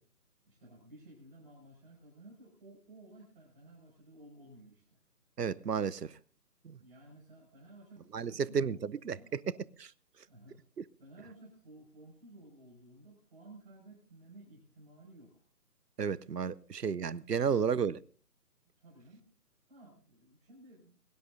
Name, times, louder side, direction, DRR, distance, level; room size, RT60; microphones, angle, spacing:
voice 1, 0.4-5.0 6.8-8.8 9.1-9.3 10.3-10.6 11.0-15.5 18.8-19.3 19.7-21.0, right 1 dB, 30° right, 5.5 m, -55 dB
voice 2, 5.4-6.2 6.6-6.8 8.1-9.2 9.8-9.9 16.0-18.0, right 6 dB, 85° right, 0.7 m, -32 dB
22.0 x 12.0 x 2.6 m
figure-of-eight pair, 150°, 47 cm